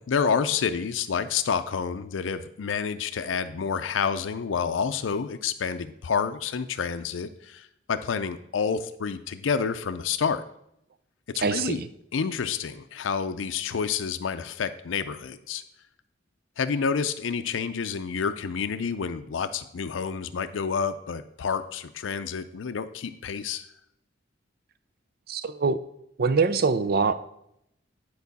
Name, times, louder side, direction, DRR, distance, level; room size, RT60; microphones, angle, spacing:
voice 1, 0.1-10.4 11.3-11.8 12.1-15.6 16.6-23.7, left 6 dB, 80° left, 9 dB, 0.5 m, -29 dB
voice 2, 11.4-11.9 25.3-25.8 26.2-27.2, right 4 dB, 55° right, 13 dB, 0.5 m, -24 dB
10.5 x 4.6 x 4.1 m, 0.76 s
head